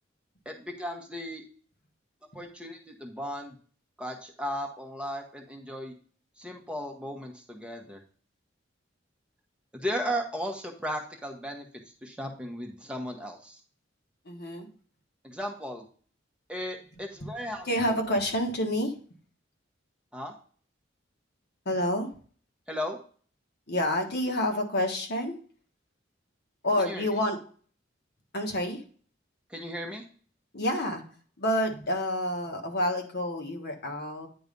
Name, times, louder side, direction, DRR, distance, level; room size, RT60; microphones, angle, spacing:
voice 1, 0.4-1.4 2.3-3.6 4.0-5.9 6.4-8.0 9.7-11.6 12.0-13.6 15.2-15.9 16.5-18.0 20.1-20.3 22.7-23.0 26.8-27.2 29.5-30.0, equal, 5° right, 2 dB, 1.0 m, -36 dB
voice 2, 14.2-14.7 17.2-17.3 17.6-18.9 21.6-22.1 23.7-25.4 26.6-27.4 28.3-28.8 30.5-31.0 31.4-34.3, left 1 dB, 60° left, 2 dB, 1.4 m, -28 dB
9.3 x 3.2 x 5.2 m, 0.43 s
head